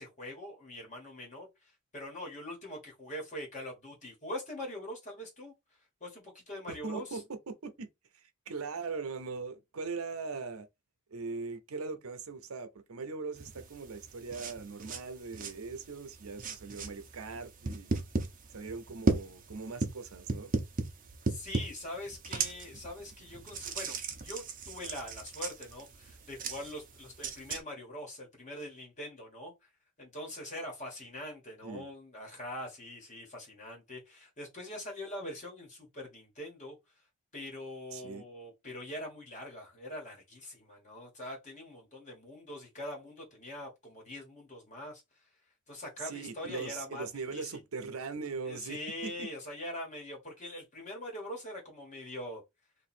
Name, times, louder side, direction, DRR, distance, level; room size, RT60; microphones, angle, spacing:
voice 1, 0.0-5.5 6.0-7.2 21.3-29.5 30.0-36.8 37.3-45.2 45.7-47.6 48.4-52.4, left 1 dB, 35° left, 1.4 m, -43 dB
voice 2, 6.7-7.9 8.5-10.7 11.1-17.9 18.5-20.6 31.6-31.9 37.9-38.2 46.0-49.3, right 4 dB, 75° right, 0.7 m, -40 dB
sound 1, 13.4-27.6, right 3 dB, 40° right, 0.8 m, -37 dB
3.1 x 2.6 x 4.3 m
head